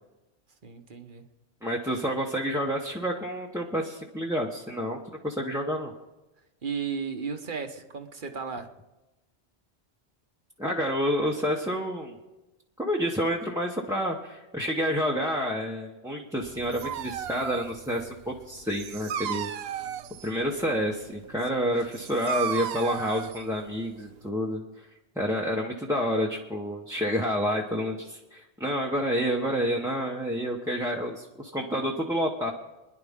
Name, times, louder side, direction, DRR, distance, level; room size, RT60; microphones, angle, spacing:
voice 1, 0.6-1.2 6.6-8.7 21.5-21.6, right 6 dB, 50° right, 6 dB, 1.3 m, -34 dB
voice 2, 1.6-5.9 10.6-12.1 12.8-19.5 20.2-24.6 25.2-32.5, equal, 5° right, -2 dB, 1.0 m, -29 dB
Dog, 16.4-24.3, right 8 dB, 70° right, 0.8 m, -36 dB
26.5 x 10.5 x 3.7 m, 1.1 s
omnidirectional pair, 1.1 m